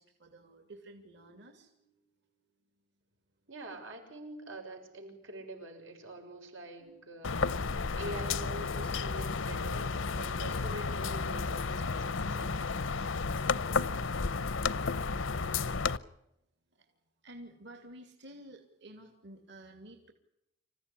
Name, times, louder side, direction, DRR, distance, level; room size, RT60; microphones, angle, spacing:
voice 1, 0.0-2.5 6.8-8.4 13.6-15.9 16.7-16.9 17.2-20.1, right 1 dB, 65° right, 4 dB, 2.8 m, -54 dB
voice 2, 3.5-7.4 8.0-12.9, right 1 dB, 90° right, 3 dB, 6.6 m, -45 dB
sound 1, 7.2-16.0, left 4 dB, 85° left, 0.8 m, -32 dB
27.0 x 15.5 x 10.0 m, 0.86 s
head